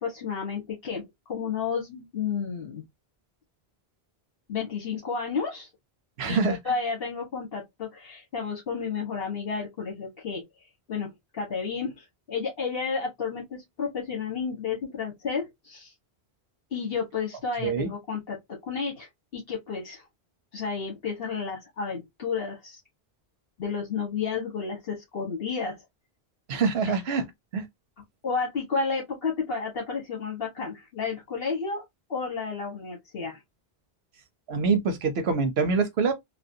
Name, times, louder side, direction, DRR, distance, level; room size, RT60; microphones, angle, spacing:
voice 1, 0.0-2.8 4.5-5.7 6.2-15.9 16.7-20.0 20.5-22.8 23.6-25.8 28.2-31.8 32.1-33.4, left 5 dB, 70° left, 1.3 m, -32 dB
voice 2, 6.2-6.6 17.6-17.9 26.5-27.3 27.5-27.7 34.5-36.1, right 4 dB, 80° right, 1.0 m, -25 dB
3.1 x 2.6 x 2.7 m
omnidirectional pair, 1.0 m